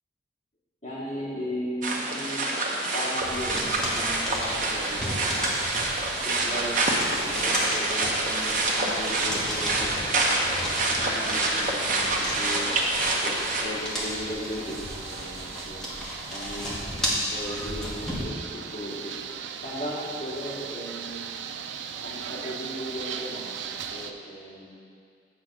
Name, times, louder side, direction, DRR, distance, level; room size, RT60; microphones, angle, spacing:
voice 1, 0.8-2.5 2.9-5.1 6.2-10.4 11.0-12.7 13.2-15.8 16.3-19.1 19.6-21.3 22.0-24.7, equal, 35° left, -9 dB, 2.0 m, -37 dB
sound 1, 1.8-13.6, right 2 dB, 45° right, 0.8 m, -27 dB
sound 2, 3.2-18.2, equal, 5° left, 1.2 m, -34 dB
sound 3, 4.4-24.1, right 7 dB, 75° right, 0.4 m, -39 dB
8.5 x 3.6 x 6.1 m, 2.2 s
head